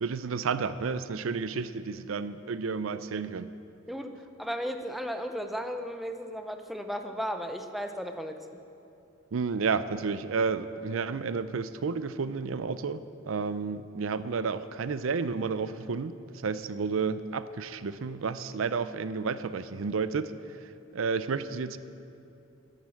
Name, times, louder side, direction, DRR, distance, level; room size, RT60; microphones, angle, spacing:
voice 1, 0.0-3.5 9.3-21.8, right 5 dB, 80° right, 14 dB, 0.5 m, -31 dB
voice 2, 4.4-8.4, equal, ahead, 6 dB, 0.6 m, -35 dB
12.0 x 11.0 x 7.6 m, 2.8 s
head